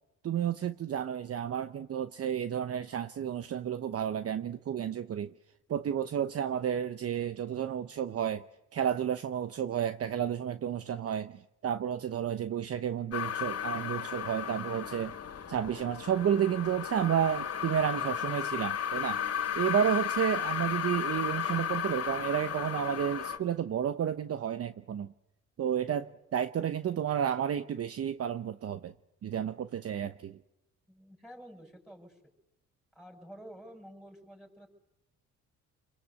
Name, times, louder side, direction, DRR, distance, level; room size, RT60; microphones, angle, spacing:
voice 1, 0.2-5.3 5.7-8.4 8.7-15.1 15.5-19.2 19.5-25.1 25.6-28.9 29.2-30.4, right 9 dB, 50° right, 11 dB, 0.9 m, -31 dB
sound 1, 13.1-23.4, left 8 dB, 50° left, 2.1 m, -34 dB
voice 2, 30.9-32.2 32.9-34.7, equal, ahead, 4 dB, 6.3 m, -50 dB
28.5 x 22.0 x 8.4 m, 0.89 s
cardioid pair, 90°, 30 cm